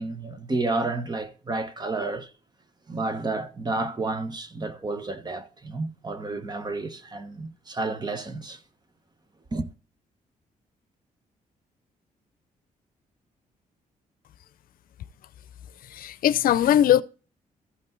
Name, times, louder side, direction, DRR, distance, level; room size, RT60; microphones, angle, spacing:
voice 1, 0.0-2.3 2.9-8.6 9.5-9.7, right 2 dB, 30° right, 1.3 m, -31 dB
voice 2, 15.9-17.0, left 11 dB, 80° left, 0.6 m, -20 dB
14.5 x 5.3 x 3.9 m
cardioid pair, 95°, 15 cm